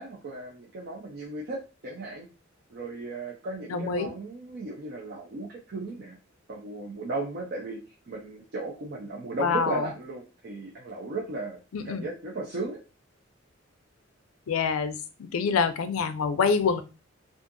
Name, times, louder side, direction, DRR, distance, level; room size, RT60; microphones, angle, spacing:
voice 1, 0.0-2.3 2.7-6.2 6.5-7.8 8.1-11.6 11.8-12.8, right 2 dB, 50° right, -2 dB, 0.5 m, -36 dB
voice 2, 3.7-4.1 9.4-9.9 11.7-12.1 14.5-15.0 15.3-16.8, left 5 dB, 85° left, 10 dB, 0.4 m, -26 dB
2.6 x 2.4 x 2.5 m, 0.30 s
head